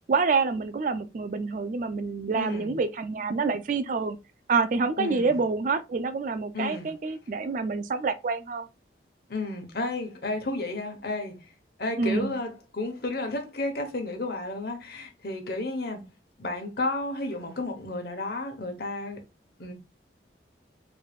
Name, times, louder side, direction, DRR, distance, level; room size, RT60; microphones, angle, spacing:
voice 1, 0.1-4.2 4.5-8.7 12.0-12.3, right 4 dB, 45° right, 0.4 m, -27 dB
voice 2, 2.4-2.8 5.0-5.4 6.5-6.9 9.3-11.3 11.8-16.0 16.4-19.2 19.6-19.7, left 2 dB, 55° left, 1.0 m, -32 dB
3.9 x 3.4 x 2.3 m
head